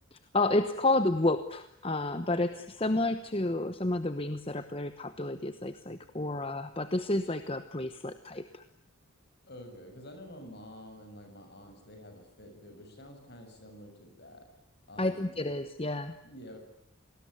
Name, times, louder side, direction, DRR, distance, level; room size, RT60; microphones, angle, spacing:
voice 1, 0.1-8.6 15.0-16.2, left 2 dB, 25° left, 11 dB, 1.0 m, -30 dB
voice 2, 2.3-2.6 9.5-14.5 14.9-15.6 16.2-16.6, equal, 50° left, 6 dB, 7.2 m, -49 dB
28.0 x 20.0 x 9.5 m, 0.73 s
head